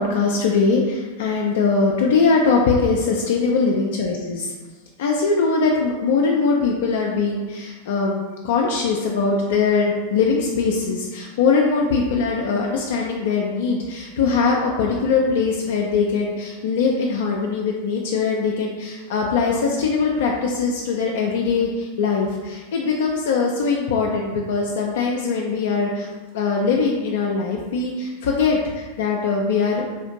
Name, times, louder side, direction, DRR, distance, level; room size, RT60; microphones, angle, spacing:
voice 1, 0.0-4.5 5.0-26.1 26.3-30.0, left 4 dB, 55° left, -1 dB, 0.3 m, -21 dB
3.6 x 2.4 x 2.7 m, 1.3 s
figure-of-eight pair, 90°, 0 cm